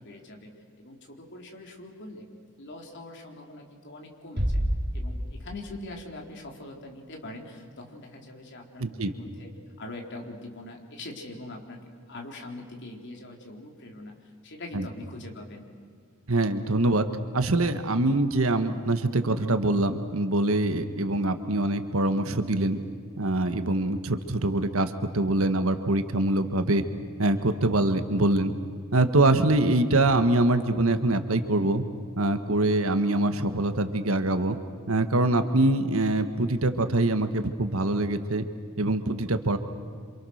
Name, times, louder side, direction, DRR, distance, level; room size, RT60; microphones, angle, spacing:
voice 1, 0.0-2.3 2.6-4.6 4.9-9.5 9.8-14.2 14.4-15.7, left 2 dB, 55° left, 1 dB, 4.0 m, -42 dB
Bass drum, 4.4-5.8, equal, 50° right, 3.6 m, -28 dB
voice 2, 8.8-9.1 14.7-14.9 16.3-17.1 17.3-22.8 23.2-26.8 27.2-28.5 28.9-31.8 32.2-34.6 34.9-38.5 38.8-39.6, right 2 dB, 75° right, 9 dB, 1.6 m, -24 dB
28.0 x 27.0 x 6.6 m, 2.1 s
head